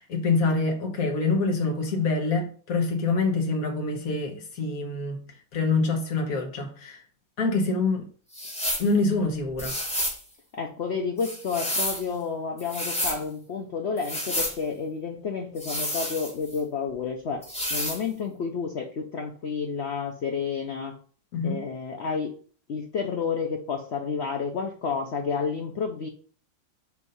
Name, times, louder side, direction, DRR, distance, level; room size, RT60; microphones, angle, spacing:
voice 1, 0.0-5.2 5.5-7.0 7.4-8.0 8.8-9.8 21.3-21.6, left 3 dB, 50° left, 1.6 m, -26 dB
sound 1, 8.3-8.9 9.6-10.2 11.2-12.0 12.6-13.2 14.0-14.6 15.6-16.6 17.4-18.0, left 1 dB, 5° left, 1.4 m, -30 dB
voice 2, 10.5-17.4 17.7-21.0 21.4-22.3 22.7-26.1, left 5 dB, 80° left, 0.5 m, -30 dB
6.5 x 2.7 x 5.5 m
omnidirectional pair, 2.0 m